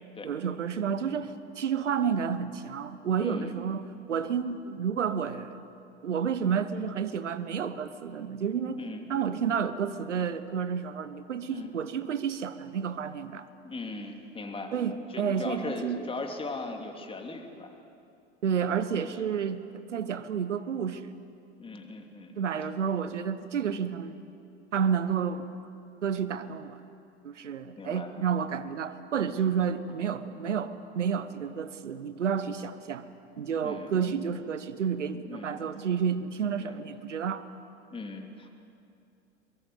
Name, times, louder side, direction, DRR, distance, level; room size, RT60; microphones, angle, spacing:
voice 1, 0.2-5.6 6.0-8.8 9.1-13.5 14.7-16.1 18.4-21.1 22.4-24.3 24.7-25.5 26.0-26.8 27.2-33.1 33.4-37.5, right 7 dB, 75° right, 13 dB, 1.2 m, -30 dB
voice 2, 3.2-3.5 8.8-9.0 11.5-11.7 13.6-14.7 15.1-17.7 19.0-19.3 21.6-22.3 27.8-28.1 33.6-33.9 35.3-35.6 36.6-36.8 37.9-38.5, left 3 dB, 15° left, 3 dB, 2.9 m, -38 dB
23.0 x 23.0 x 8.2 m, 2.6 s
figure-of-eight pair, 80°, 37 cm